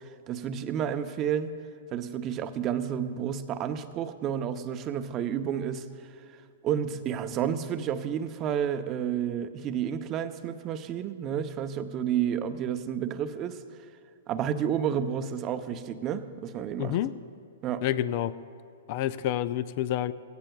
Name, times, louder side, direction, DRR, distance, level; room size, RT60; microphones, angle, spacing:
voice 1, 0.0-1.6 1.9-5.9 6.6-13.6 14.3-17.0 17.6-17.8, right 9 dB, 30° right, 9 dB, 0.7 m, -30 dB
voice 2, 16.8-17.1 17.8-18.3 18.9-20.1, left 12 dB, 45° left, 15 dB, 0.4 m, -28 dB
18.0 x 16.0 x 2.3 m, 2.3 s
hypercardioid pair, 135°, 0 cm